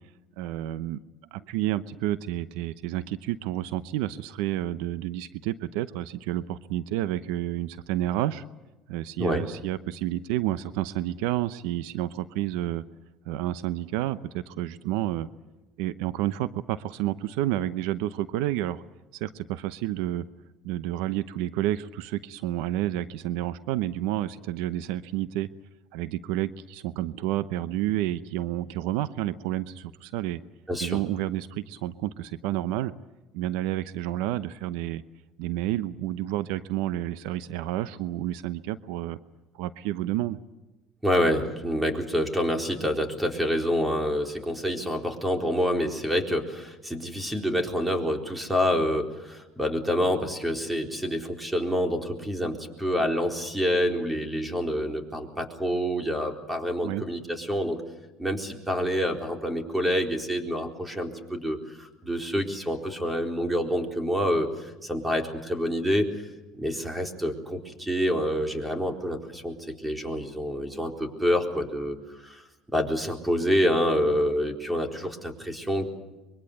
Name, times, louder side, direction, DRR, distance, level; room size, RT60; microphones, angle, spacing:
voice 1, 0.4-1.0 1.3-8.4 8.9-12.8 13.3-15.3 15.8-18.8 19.1-20.2 20.6-25.5 25.9-30.4 30.8-32.9 33.3-35.0 35.4-39.2 39.5-40.4 56.8-57.0, right 14 dB, 85° right, 15 dB, 0.8 m, -30 dB
voice 2, 30.7-31.0 41.0-57.8 58.2-66.2 66.6-72.4 72.7-75.9, equal, 10° right, 4 dB, 4.1 m, -27 dB
24.5 x 23.0 x 8.0 m, 1.1 s
supercardioid pair, 95°, 0 cm